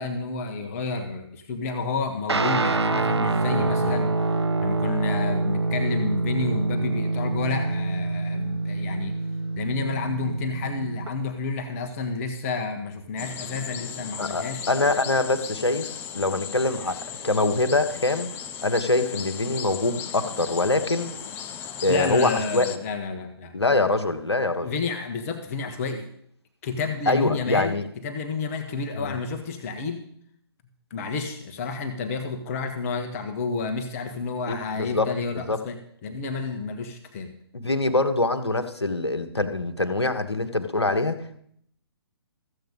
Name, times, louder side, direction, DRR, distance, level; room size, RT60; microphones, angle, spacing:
voice 1, 0.0-4.3 4.6-9.2 9.5-14.7 21.9-23.5 24.6-26.1 26.6-30.1 30.9-35.8 36.0-37.3, left 4 dB, 35° left, 6 dB, 1.3 m, -30 dB
Guitar, 2.3-11.1, right 3 dB, 85° right, 0.7 m, -26 dB
voice 2, 3.5-4.0 14.2-15.9 16.1-18.3 18.6-21.1 21.8-22.8 23.5-24.7 27.1-27.8 29.0-29.2 34.5-35.1 35.5-35.6 37.5-41.4, left 2 dB, 85° left, 8 dB, 1.2 m, -24 dB
sound 1, 13.2-22.8, left 8 dB, 15° left, 0.6 m, -37 dB
14.5 x 8.0 x 5.3 m, 0.67 s
figure-of-eight pair, 135°, 14 cm